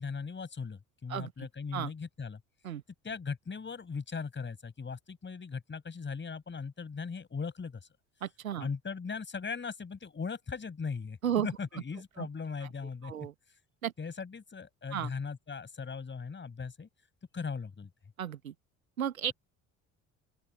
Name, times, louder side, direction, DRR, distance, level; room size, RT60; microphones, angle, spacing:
voice 1, 0.0-2.4 3.0-7.8 8.6-13.1 14.0-16.9 17.3-17.9, left 5 dB, 25° left, 6.1 m, -39 dB
voice 2, 1.1-1.9 2.6-2.8 8.2-8.7 11.2-11.5 11.7-11.8 12.2-12.3 13.0-13.3 13.8-13.9 14.9-15.1 18.2-18.5 19.0-19.3, right 10 dB, 80° right, 1.8 m, -34 dB
open air
figure-of-eight pair, 55°, 41 cm